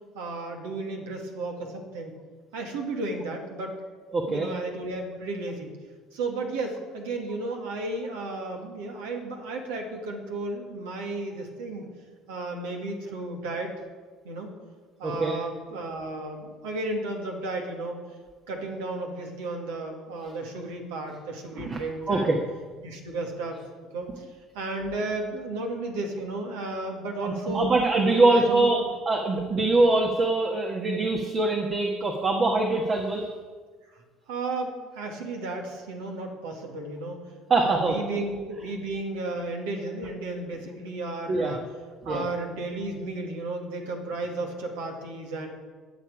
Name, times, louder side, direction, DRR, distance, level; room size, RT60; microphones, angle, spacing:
voice 1, 0.1-2.1 2.5-3.8 4.3-5.8 6.1-11.8 12.3-13.7 14.2-14.5 15.0-18.0 18.5-22.4 22.8-23.6 23.9-24.3 24.5-27.7 28.1-28.9 33.9-37.2 37.6-41.7 42.0-45.5, right 2 dB, 75° right, 2 dB, 2.2 m, -33 dB
voice 2, 4.1-4.5 15.0-15.4 21.6-21.8 22.1-22.4 27.2-28.8 29.0-33.3 37.5-37.9 41.3-41.5 42.1-42.2, right 2 dB, 40° right, 2 dB, 1.5 m, -23 dB
19.5 x 7.2 x 5.0 m, 1.5 s
hypercardioid pair, 60°, 0 cm